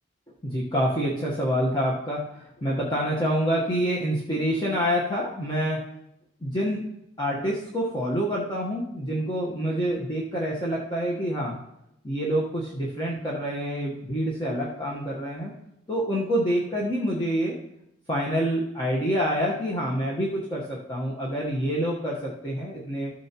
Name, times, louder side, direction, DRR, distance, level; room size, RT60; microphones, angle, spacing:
voice 1, 0.4-5.8 6.4-6.8 7.2-11.6 12.0-15.5 15.9-17.6 18.1-23.1, equal, 20° left, -5 dB, 1.1 m, -27 dB
14.0 x 7.0 x 2.9 m, 0.80 s
head